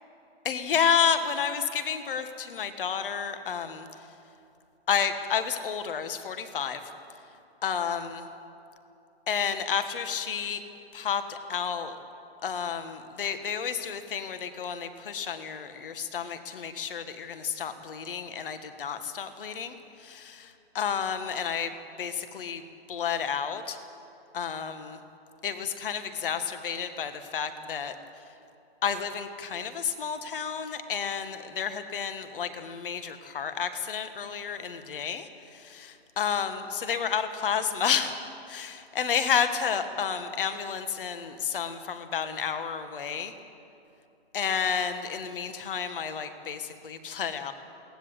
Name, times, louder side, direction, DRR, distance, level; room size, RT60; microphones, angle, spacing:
voice 1, 0.4-3.9 4.9-6.8 7.6-8.2 9.3-10.6 10.9-12.0 12.4-19.7 20.0-20.4 20.7-21.7 22.0-22.6 22.9-23.8 24.3-25.0 25.4-27.9 28.8-35.3 35.5-38.2 38.5-43.3 44.3-47.5, left 7 dB, 55° left, 9 dB, 1.6 m, -30 dB
22.0 x 18.0 x 8.1 m, 2.7 s
hypercardioid pair, 170°, 32 cm